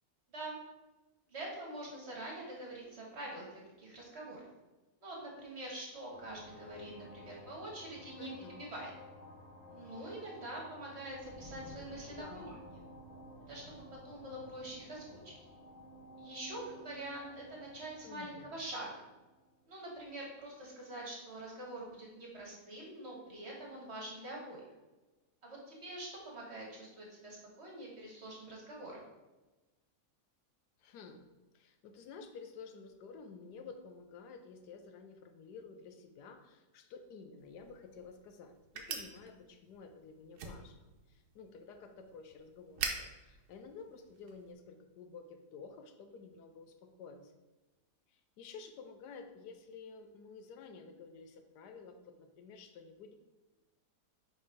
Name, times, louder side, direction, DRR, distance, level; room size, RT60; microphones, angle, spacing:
voice 1, 1.3-4.4 5.0-8.3 8.6-8.9 9.7-12.8 13.5-15.3 16.2-18.9 19.7-24.6 25.4-29.0, right 1 dB, 45° right, -3 dB, 1.7 m, -45 dB
sound 1, 6.1-20.2, left 1 dB, 65° left, 1.3 m, -54 dB
voice 2, 8.2-8.6 12.1-12.5 18.0-18.5 30.8-31.2 31.5-47.3 48.1-53.1, left 5 dB, 90° left, 7 dB, 1.3 m, -52 dB
sound 2, 37.4-44.5, right 5 dB, 75° right, 1.3 m, -46 dB
5.3 x 4.0 x 5.0 m, 1.1 s
omnidirectional pair, 1.7 m